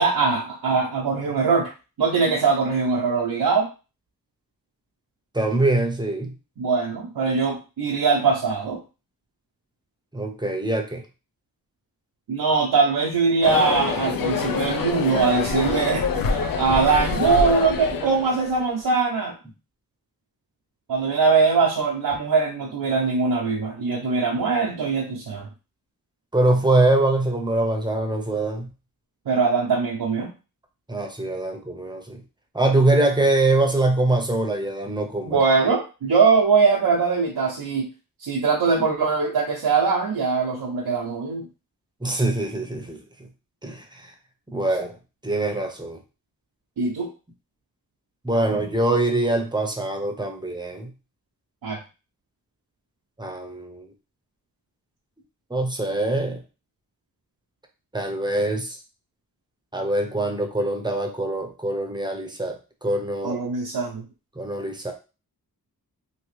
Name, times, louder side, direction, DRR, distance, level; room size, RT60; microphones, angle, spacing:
voice 1, 0.0-1.7 2.0-3.7 6.6-8.8 12.3-19.3 20.9-25.5 29.3-30.3 35.3-37.9 38.2-41.5 46.8-47.1 51.6-51.8 63.2-64.0, right 4 dB, 85° right, -1 dB, 0.6 m, -22 dB
voice 2, 5.3-6.3 10.1-11.0 26.3-28.7 30.9-32.2 32.5-35.4 42.0-43.0 43.6-44.1 44.5-45.0 45.2-46.0 48.2-50.9 53.2-53.9 55.5-56.4 57.9-58.8 59.7-62.6 62.8-63.4 64.4-64.9, right 2 dB, 10° right, 3 dB, 0.7 m, -23 dB
sound 1, 13.4-18.7, left 5 dB, 65° left, 0.5 m, -26 dB
2.9 x 2.7 x 3.1 m, 0.31 s
wide cardioid pair, 80°, 37 cm